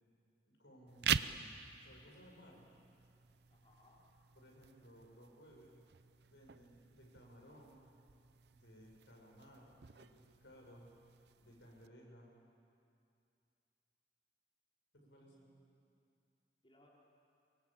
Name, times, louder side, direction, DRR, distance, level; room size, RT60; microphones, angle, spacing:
voice 1, 0.5-2.6 4.4-5.8 6.2-7.8 8.5-10.9 11.4-12.3 14.9-15.5, equal, 85° left, -1 dB, 7.0 m, -60 dB
sound 1, 0.9-11.9, right 8 dB, 65° right, 0.6 m, -45 dB
voice 2, 3.5-4.1 15.0-15.8 16.6-16.9, left 2 dB, 30° left, -5 dB, 4.0 m, -69 dB
25.5 x 23.0 x 8.8 m, 2.5 s
head